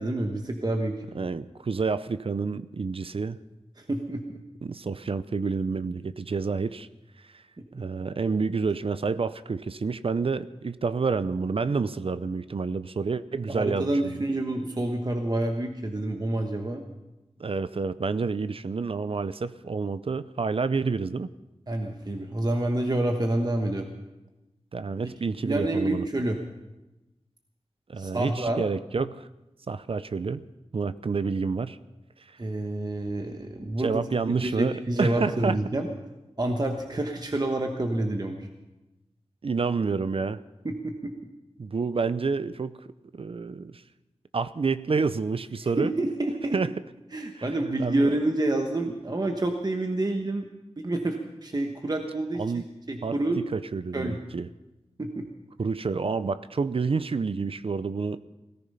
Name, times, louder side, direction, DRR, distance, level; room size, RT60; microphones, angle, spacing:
voice 1, 0.0-1.0 3.8-4.4 7.6-7.7 13.5-16.8 21.7-23.9 25.4-26.4 28.0-28.6 32.4-34.0 34.4-35.9 36.4-38.5 40.6-41.1 45.8-46.6 47.1-50.4 50.8-53.4 53.9-54.2 55.0-55.3, right 1 dB, 35° right, 4 dB, 1.2 m, -28 dB
voice 2, 1.1-3.4 4.6-6.9 7.3-7.4 7.7-14.2 17.4-21.3 24.7-26.0 27.9-29.3 29.7-30.4 30.7-31.8 32.3-32.4 33.8-35.6 39.4-40.4 41.6-42.7 43.1-43.8 44.3-45.9 46.5-46.7 47.4-47.5 47.8-48.2 52.4-52.6 53.0-53.2 53.5-54.5 55.6-58.2, right 4 dB, 55° right, 14 dB, 0.5 m, -29 dB
17.5 x 14.0 x 5.6 m, 1.0 s
wide cardioid pair, 85°, 11 cm